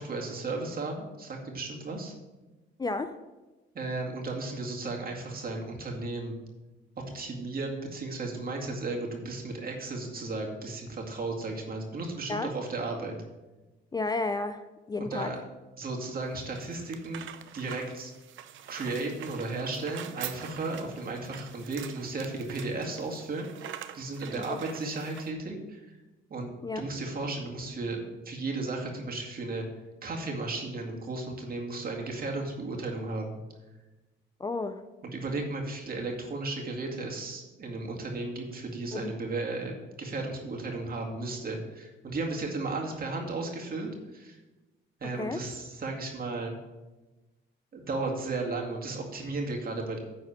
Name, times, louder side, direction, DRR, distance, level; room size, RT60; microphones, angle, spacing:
voice 1, 0.0-2.1 3.7-6.4 7.1-13.2 15.0-15.4 15.8-17.3 17.5-18.1 18.7-25.8 26.3-29.6 30.0-33.4 35.0-44.4 45.0-46.5 47.7-50.0, right 3 dB, 45° right, 0 dB, 2.2 m, -34 dB
voice 2, 2.8-3.2 12.3-12.5 13.9-14.6 14.9-15.3 24.4-24.6 26.6-26.8 34.4-34.8 38.9-39.1 45.2-45.4, left 3 dB, 20° left, 10 dB, 0.4 m, -32 dB
sound 1, 16.2-25.3, right 11 dB, 75° right, 0.6 m, -45 dB
10.0 x 4.2 x 7.2 m, 1.1 s
cardioid pair, 90°, 20 cm